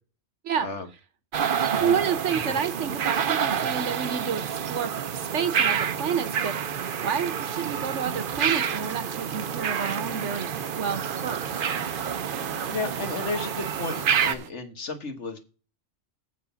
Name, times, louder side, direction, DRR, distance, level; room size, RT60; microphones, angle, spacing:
sound 1, 1.3-14.3, right 7 dB, 50° right, 0.8 m, -28 dB
voice 1, 1.8-4.4 4.7-11.7, right 7 dB, 70° right, 12 dB, 1.3 m, -30 dB
sound 2, 8.1-14.5, right 9 dB, 90° right, 1.2 m, -43 dB
voice 2, 12.6-15.4, left 3 dB, 65° left, 7 dB, 1.8 m, -33 dB
7.6 x 5.7 x 6.9 m, 0.36 s
omnidirectional pair, 1.3 m